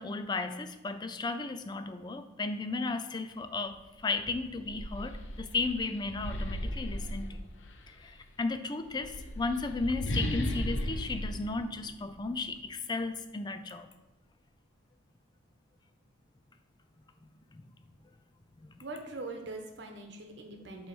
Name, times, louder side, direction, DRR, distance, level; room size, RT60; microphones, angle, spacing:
voice 1, 0.0-3.8 4.0-7.4 8.4-13.9, left 3 dB, 20° left, 9 dB, 0.3 m, -34 dB
sound 1, 3.7-3.8 4.2-7.9 8.8-12.4, equal, 75° left, 0.8 m, -36 dB
voice 2, 18.8-20.9, right 2 dB, 60° right, 3 dB, 1.0 m, -42 dB
8.5 x 3.1 x 6.0 m, 1.1 s
head